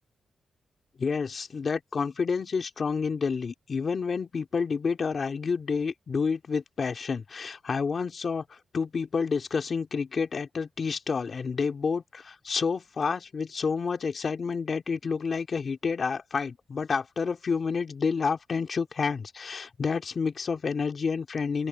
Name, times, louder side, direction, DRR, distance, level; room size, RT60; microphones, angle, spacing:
voice 1, 1.0-21.7, left 5 dB, 45° left, 2.7 m, -29 dB
open air
cardioid pair, 115°, 0 cm